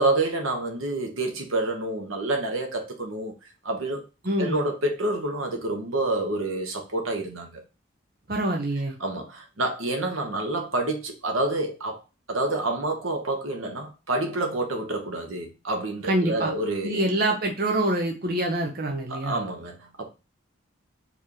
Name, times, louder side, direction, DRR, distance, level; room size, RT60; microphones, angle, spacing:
voice 1, 0.0-3.4 3.6-4.0 4.4-7.6 9.0-12.0 12.3-17.0 19.1-20.1, right 2 dB, 85° right, 1.3 m, -28 dB
voice 2, 8.3-9.0 16.1-16.5 16.8-19.4, right 1 dB, 50° right, 0.8 m, -25 dB
4.6 x 3.6 x 3.0 m
head